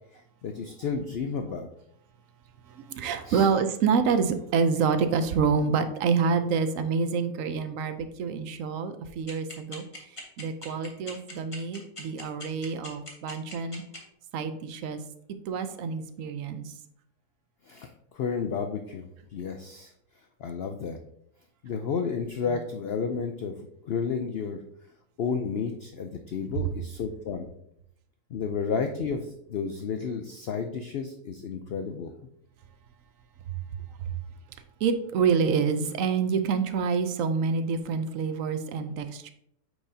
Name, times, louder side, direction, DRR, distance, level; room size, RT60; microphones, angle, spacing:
voice 1, 0.4-1.7 3.3-3.5 17.7-19.9 20.4-21.0 21.6-24.6 25.2-27.5 28.3-32.1, left 5 dB, 85° left, 5 dB, 0.5 m, -32 dB
voice 2, 2.7-9.8 10.1-13.8 14.3-15.0 15.5-16.7 33.5-33.6 34.0-34.1 34.8-39.3, right 5 dB, 65° right, 10 dB, 0.9 m, -27 dB
sound 1, 9.3-14.0, left 2 dB, 20° left, 1.1 m, -40 dB
8.7 x 4.8 x 2.7 m, 0.73 s
omnidirectional pair, 1.7 m